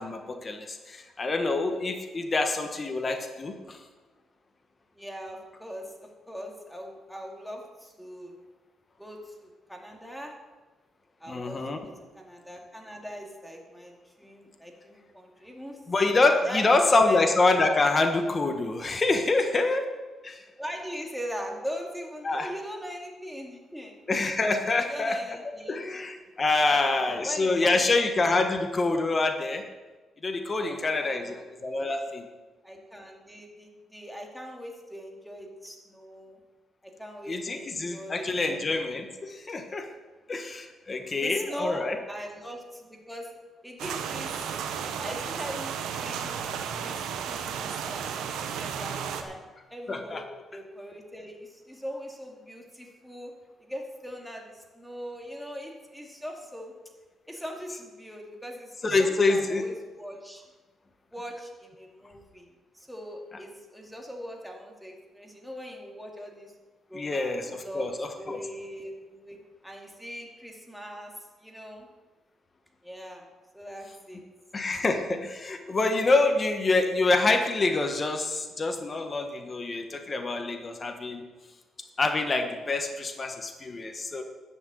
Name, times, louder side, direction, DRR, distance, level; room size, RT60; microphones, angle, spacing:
voice 1, 0.0-3.8 11.3-11.9 15.9-19.8 20.2-20.4 22.2-22.5 24.1-25.2 25.7-29.6 30.2-32.2 37.3-39.9 40.3-42.0 49.9-50.2 58.8-59.6 66.9-68.4 74.5-81.2 82.0-84.2, left 3 dB, 30° left, 5 dB, 1.3 m, -26 dB
voice 2, 4.9-8.3 9.0-10.3 11.2-15.8 16.4-17.2 20.6-24.0 24.8-25.9 26.7-27.8 30.6-31.4 31.8-31.9 32.6-36.4 36.8-38.7 41.1-43.3 43.6-44.6 45.0-46.4 46.8-49.4 49.7-53.3 53.6-56.7 57.3-60.4 61.1-62.5 62.7-66.5 66.9-69.4 69.6-71.9 72.8-73.2 73.5-74.2, equal, ahead, 0 dB, 2.5 m, -41 dB
sound 1, 43.8-49.2, right 7 dB, 85° right, 1.1 m, -33 dB
11.5 x 6.1 x 8.3 m, 1.3 s
cardioid pair, 90°, 0 cm